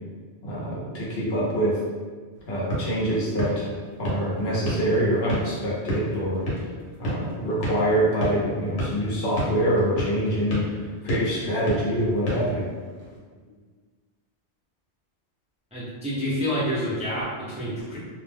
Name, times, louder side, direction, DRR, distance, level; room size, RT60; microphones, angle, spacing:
voice 1, 0.4-1.8 2.5-3.7 4.0-6.4 7.0-10.6 11.0-12.6, right 1 dB, 65° left, -6 dB, 0.9 m, -25 dB
sound 1, 2.3-13.2, equal, 90° left, 1.1 m, -33 dB
voice 2, 15.7-18.0, equal, 10° right, -10 dB, 0.5 m, -28 dB
2.5 x 2.1 x 3.2 m, 1.5 s
omnidirectional pair, 1.1 m